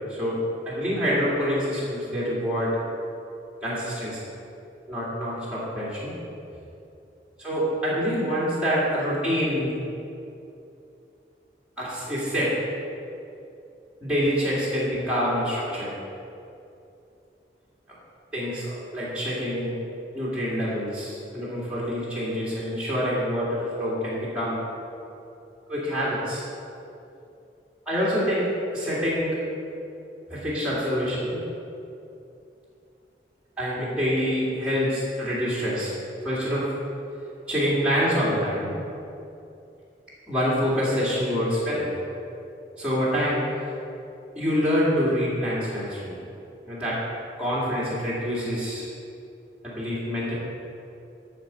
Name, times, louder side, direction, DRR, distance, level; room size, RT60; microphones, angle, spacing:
voice 1, 0.7-2.7 3.6-4.2 4.9-6.1 7.4-9.8 11.8-12.5 14.0-15.9 18.3-19.8 20.1-24.6 25.7-26.4 27.9-29.4 30.3-31.4 33.6-35.9 36.2-36.7 37.5-38.7 40.3-41.9 42.8-43.4 44.4-46.2 46.7-47.0 47.4-48.9 49.6-50.3, equal, 5° right, -9 dB, 2.3 m, -26 dB
12.0 x 4.3 x 6.8 m, 2.7 s
head